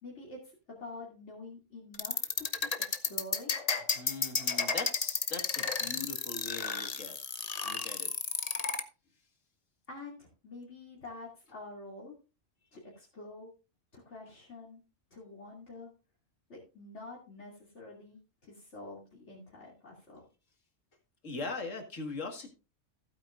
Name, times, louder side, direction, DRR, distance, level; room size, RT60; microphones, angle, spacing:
voice 1, 0.0-3.6 9.9-12.1 12.7-13.5 13.9-14.8 15.1-15.9 16.5-20.2, left 2 dB, 65° left, -5 dB, 3.0 m, -47 dB
sound 1, 1.9-8.8, left 5 dB, 35° left, 0.9 m, -32 dB
voice 2, 3.9-7.2 7.6-8.1 21.2-22.5, left 3 dB, 85° left, 4 dB, 2.3 m, -41 dB
15.5 x 8.9 x 2.5 m, 0.32 s
omnidirectional pair, 1.3 m